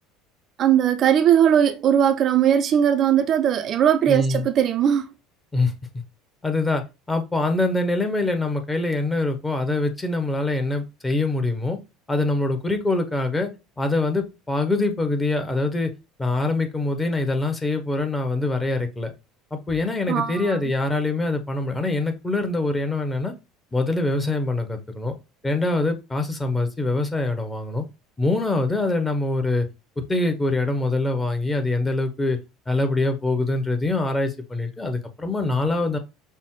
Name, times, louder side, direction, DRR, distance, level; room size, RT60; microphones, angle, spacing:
voice 1, 0.6-5.1 20.1-20.6, right 9 dB, 40° right, 0.3 m, -19 dB
voice 2, 4.1-4.4 5.5-6.0 6.4-6.8 7.1-11.8 12.1-13.5 13.8-15.9 16.2-19.1 19.5-23.3 23.7-25.1 25.4-27.8 28.2-29.7 30.1-32.4 32.7-36.0, left 2 dB, 15° left, 0.8 m, -24 dB
5.4 x 2.0 x 3.0 m
figure-of-eight pair, 65°, 0 cm